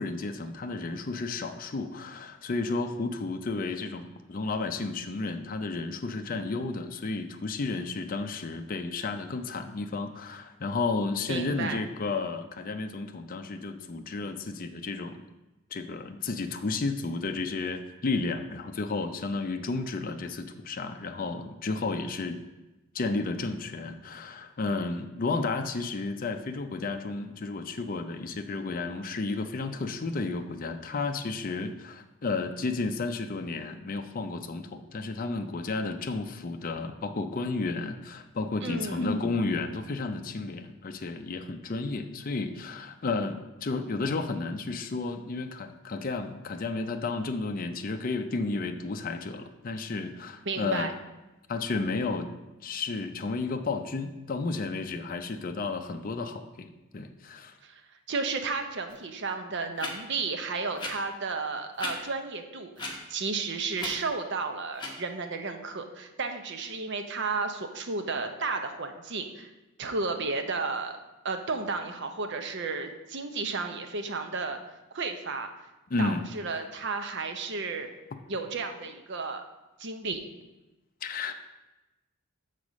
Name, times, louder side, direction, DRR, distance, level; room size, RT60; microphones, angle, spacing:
voice 1, 0.0-15.2 15.7-22.4 22.9-50.9 51.5-52.4 52.6-57.6 75.9-76.2 81.0-81.3, left 3 dB, 40° left, 6 dB, 0.5 m, -32 dB
voice 2, 11.3-11.8 38.6-39.1 50.5-50.9 57.6-57.8 58.1-69.5 69.8-70.9 71.2-74.6 74.9-75.5 76.0-77.9 78.3-79.4 79.8-80.2, right 4 dB, 55° right, 6 dB, 0.7 m, -33 dB
sound 1, 58.9-59.0 59.8-59.9 60.8-60.9 61.7-61.9 62.8-62.9 63.8-63.9 64.7-64.9, left 2 dB, 20° left, 1.0 m, -35 dB
6.6 x 4.1 x 6.1 m, 1.1 s
head